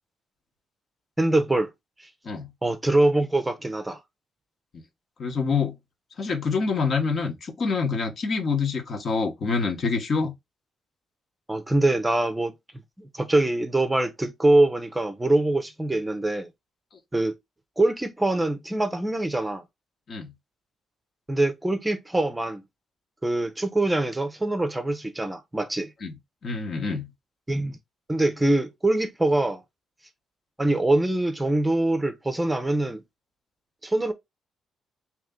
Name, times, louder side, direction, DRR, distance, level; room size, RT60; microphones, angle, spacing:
voice 1, 1.2-1.7 2.0-2.1 2.6-4.0 9.5-9.6 11.5-12.5 13.0-16.5 17.1-17.3 17.8-19.6 21.3-22.6 23.2-25.9 27.5-27.8 28.1-29.6 30.6-33.0 33.8-34.1, right 2 dB, 10° right, 0.7 m, -24 dB
voice 2, 5.2-5.7 6.2-10.3 20.1-20.3 26.0-26.1 26.4-27.1, left 4 dB, 50° left, 1.2 m, -26 dB
3.2 x 3.0 x 3.6 m
cardioid pair, 90°, 0 cm